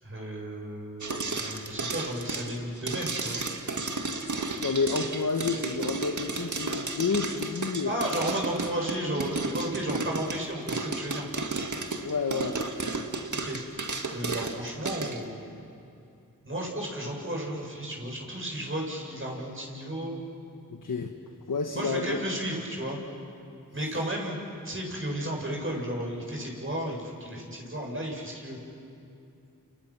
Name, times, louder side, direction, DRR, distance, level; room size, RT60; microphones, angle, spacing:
voice 1, 0.0-3.4 7.8-11.2 13.3-13.8 14.1-15.4 16.4-20.2 21.7-23.0 23.7-28.6, right 1 dB, 40° right, -1 dB, 7.9 m, -33 dB
sound 1, 1.0-15.2, right 3 dB, 60° right, 2.0 m, -33 dB
voice 2, 4.6-7.9 12.0-13.1 20.7-21.1 21.5-22.2, left 4 dB, 70° left, 4 dB, 1.6 m, -30 dB
30.0 x 28.5 x 6.2 m, 2.6 s
cardioid pair, 40°, 33 cm